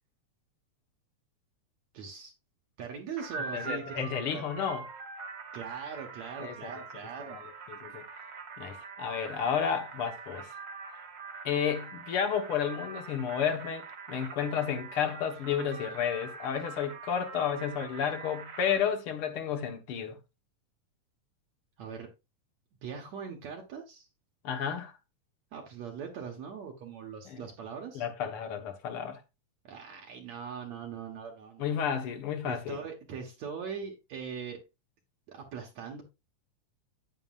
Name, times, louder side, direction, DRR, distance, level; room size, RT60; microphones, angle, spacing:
voice 1, 1.9-2.3 2.8-4.5 5.5-7.4 21.8-22.1 22.8-24.1 25.5-28.0 29.6-31.8 32.5-34.6 35.3-36.0, right 6 dB, 65° right, 2.3 m, -41 dB
sound 1, 3.2-18.8, right 5 dB, 40° right, 1.9 m, -44 dB
voice 2, 3.5-4.8 6.4-6.7 7.2-7.4 7.7-8.0 8.6-10.5 11.5-20.2 24.4-24.9 27.3-27.4 27.9-29.2 31.6-32.8, left 8 dB, 55° left, 1.7 m, -32 dB
9.7 x 9.2 x 2.4 m
omnidirectional pair, 3.7 m